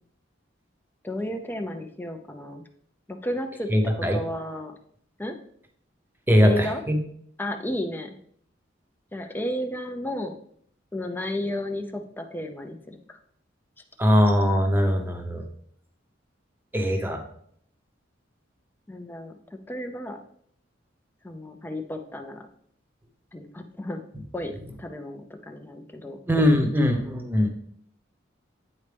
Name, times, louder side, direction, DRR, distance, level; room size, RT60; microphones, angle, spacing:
voice 1, 1.0-2.6 3.1-3.7 4.0-4.7 5.2-5.3 6.4-6.8 7.4-8.2 9.1-10.3 10.9-13.2 18.9-20.2 21.2-22.5 23.3-24.0 24.3-26.2, left 1 dB, 10° left, 5 dB, 0.5 m, -33 dB
voice 2, 3.7-4.2 6.3-7.0 14.0-15.4 16.7-17.2 26.3-27.5, equal, 10° right, 4 dB, 0.9 m, -21 dB
9.5 x 4.2 x 3.4 m, 0.65 s
head